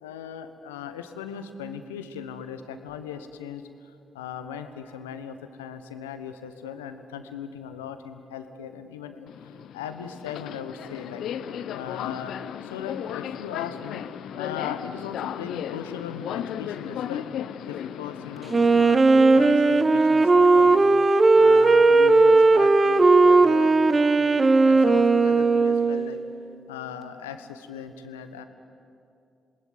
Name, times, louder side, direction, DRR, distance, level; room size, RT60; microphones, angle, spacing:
voice 1, 0.0-3.6 4.1-9.3 9.7-11.2 11.7-12.3 12.6-14.0 14.4-17.3 17.7-20.9 21.3-23.9 24.2-26.2 26.7-28.4, left 8 dB, 85° left, 9 dB, 1.2 m, -38 dB
Subway metro underground, 9.3-18.8, left 9 dB, 65° left, 0.7 m, -35 dB
Wind instrument woodwind instrument, 18.5-26.2, right 3 dB, 35° right, 1.5 m, -17 dB
27.5 x 20.0 x 9.7 m, 2.6 s
hypercardioid pair, 40°, 0 cm